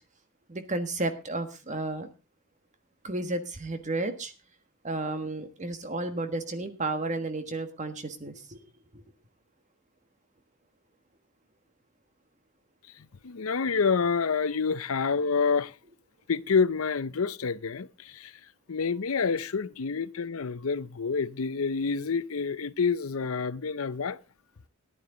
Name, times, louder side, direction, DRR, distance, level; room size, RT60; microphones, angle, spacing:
voice 1, 0.5-2.1 3.0-4.3 4.8-8.6 8.9-9.0, right 2 dB, 35° right, 1.5 m, -32 dB
voice 2, 13.0-15.7 16.3-18.3 18.7-24.2, left 5 dB, 80° left, 0.7 m, -28 dB
14.5 x 11.5 x 3.9 m
head